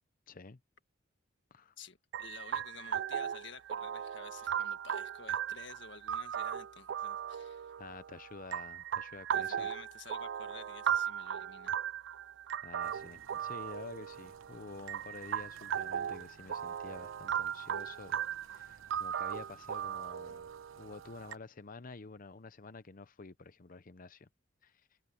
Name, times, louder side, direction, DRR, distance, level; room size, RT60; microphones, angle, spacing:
voice 1, 0.3-0.6 1.5-1.7 7.8-9.7 12.6-20.5 20.8-24.3 24.6-24.9, left 3 dB, 45° left, 0.7 m, -49 dB
voice 2, 1.8-7.8 9.3-11.7, left 5 dB, 65° left, 1.8 m, -52 dB
sound 1, 2.1-21.3, right 9 dB, 60° right, 0.4 m, -37 dB
sound 2, 12.8-21.4, right 5 dB, 90° right, 1.0 m, -60 dB
head